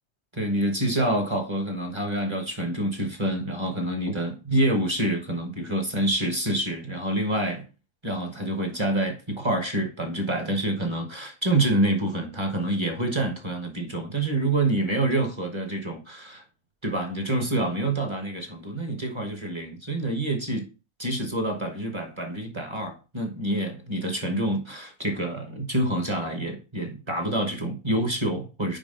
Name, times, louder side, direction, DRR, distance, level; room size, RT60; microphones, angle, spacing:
voice 1, 0.3-7.6 8.0-16.4 16.8-20.7 21.0-28.8, right 1 dB, 25° right, 1.0 m, -27 dB
5.3 x 4.8 x 3.7 m
omnidirectional pair, 1.4 m